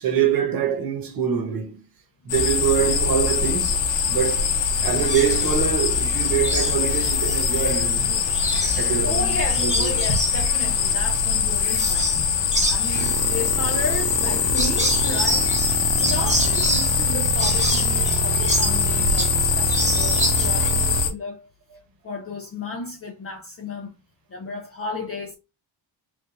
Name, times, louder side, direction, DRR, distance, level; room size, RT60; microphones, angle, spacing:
voice 1, 0.0-1.8 2.2-3.8 4.1-4.5 4.8-8.2 8.7-10.0 16.0-16.1, right 8 dB, 45° right, 1.1 m, -24 dB
sound 1, 2.3-21.1, left 6 dB, 70° left, 1.0 m, -22 dB
sound 2, 5.0-5.6 6.0-7.8 8.2-12.2 12.5-19.4 19.7-20.7, right 1 dB, 15° right, 1.0 m, -28 dB
voice 2, 9.0-12.1 12.7-15.5 16.0-21.5 22.0-23.9 24.3-25.4, left 3 dB, 30° left, 0.6 m, -33 dB
sound 3, 12.9-21.1, right 8 dB, 65° right, 0.7 m, -28 dB
4.0 x 3.3 x 2.6 m
cardioid pair, 175°, 47 cm